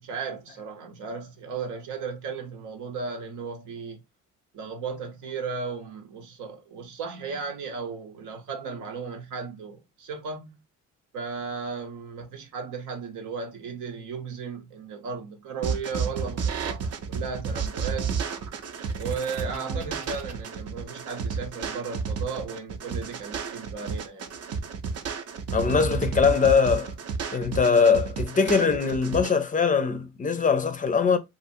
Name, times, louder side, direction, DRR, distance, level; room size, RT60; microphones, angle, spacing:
voice 1, 0.0-4.0 4.5-10.6 11.1-18.1 19.0-24.3, right 5 dB, 85° right, 0.8 m, -35 dB
sound 1, 15.6-29.3, right 5 dB, 55° right, 0.6 m, -31 dB
voice 2, 25.5-26.9 27.3-31.2, left 5 dB, 25° left, 0.4 m, -22 dB
2.7 x 2.5 x 2.6 m
cardioid pair, 90°, 30 cm